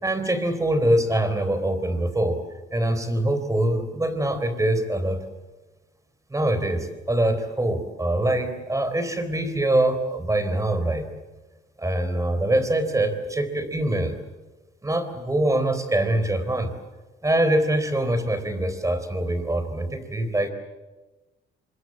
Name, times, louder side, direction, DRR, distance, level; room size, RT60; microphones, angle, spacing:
voice 1, 0.0-2.4 2.7-5.2 6.3-11.1 11.8-14.2 14.8-16.7 17.2-20.5, right 1 dB, 15° right, 10 dB, 3.8 m, -24 dB
25.5 x 22.0 x 7.8 m, 1.2 s
cardioid pair, 90°, 20 cm